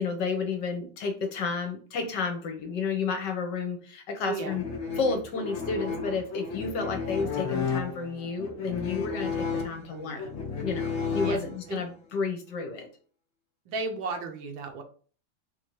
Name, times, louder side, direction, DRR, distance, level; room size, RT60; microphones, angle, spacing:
voice 1, 0.0-4.6 5.0-10.3 10.6-12.9, left 5 dB, 65° left, 5 dB, 1.3 m, -31 dB
voice 2, 4.2-4.6 9.9-10.3 11.2-11.8 13.7-14.8, right 4 dB, 70° right, 4 dB, 1.5 m, -35 dB
sound 1, 4.4-11.9, left 5 dB, 80° left, 0.6 m, -33 dB
4.4 x 2.7 x 4.5 m, 0.41 s
omnidirectional pair, 2.3 m